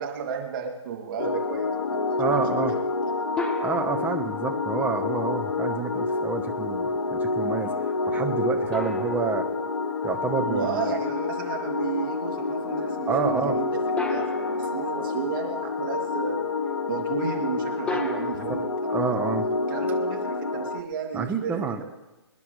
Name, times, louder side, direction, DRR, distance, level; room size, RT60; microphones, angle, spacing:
voice 1, 0.0-2.7 10.5-16.4 16.9-18.7 19.0-19.2 19.7-21.7, right 7 dB, 45° right, 1 dB, 2.9 m, -33 dB
sound 1, 1.2-20.8, left 3 dB, 70° left, 1.3 m, -28 dB
voice 2, 2.2-2.8 3.6-9.5 10.0-11.0 13.1-13.6 18.3-18.6 18.9-19.5 21.1-21.8, right 5 dB, 10° right, 5 dB, 1.1 m, -29 dB
sound 2, 3.4-4.4 8.7-10.3 14.0-15.1 17.9-18.3, left 2 dB, 5° left, 1.1 m, -34 dB
26.0 x 10.5 x 3.4 m, 1.1 s
hypercardioid pair, 140°, 15 cm